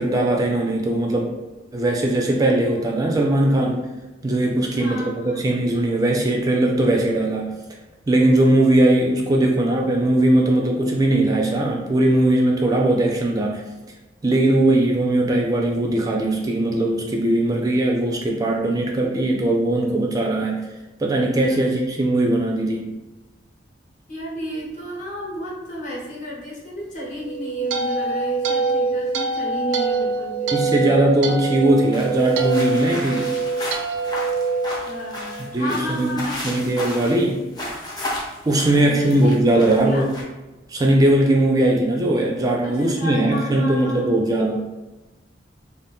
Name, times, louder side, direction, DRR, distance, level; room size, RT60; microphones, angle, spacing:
voice 1, 0.0-1.3 1.7-3.8 4.2-7.5 8.1-13.6 14.2-20.6 21.0-22.9 30.5-33.3 35.5-37.4 38.5-40.1 40.7-44.6, right 1 dB, 20° right, 0 dB, 0.3 m, -19 dB
voice 2, 4.7-5.5 21.5-21.6 24.1-31.3 34.8-36.4 38.7-39.6 39.8-40.0 42.6-44.1, equal, 45° left, -5 dB, 1.0 m, -32 dB
sound 1, 27.2-35.5, right 4 dB, 85° right, 0.4 m, -24 dB
sound 2, 31.9-40.2, left 1 dB, 25° left, 0.7 m, -33 dB
2.6 x 2.5 x 3.4 m, 1.1 s
head